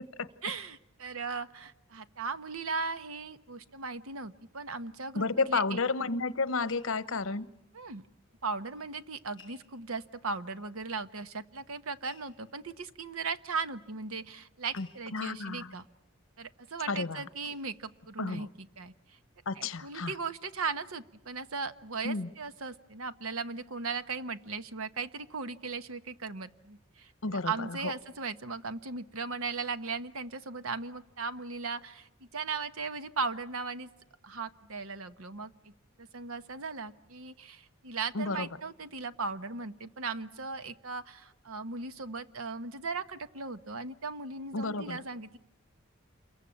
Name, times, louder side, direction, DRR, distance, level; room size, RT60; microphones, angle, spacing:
voice 1, 0.4-5.8 7.7-8.0 8.4-15.8 16.4-18.9 19.6-33.9 34.2-35.7 36.0-45.4, right 4 dB, 80° right, 12 dB, 1.1 m, -37 dB
voice 2, 5.1-7.5 14.7-14.9 15.1-15.8 16.9-17.2 18.2-18.5 19.5-20.1 22.0-22.3 27.2-27.9 38.1-38.5 44.5-45.0, left 3 dB, 70° left, 15 dB, 1.0 m, -31 dB
sound 1, 6.7-8.3 8.6-8.7 9.4-10.3 11.1-11.2 12.0-17.2 17.4-18.3 18.8-19.1 19.4-19.5, left 7 dB, 20° left, 5.1 m, -61 dB
28.0 x 22.5 x 8.7 m, 0.84 s
head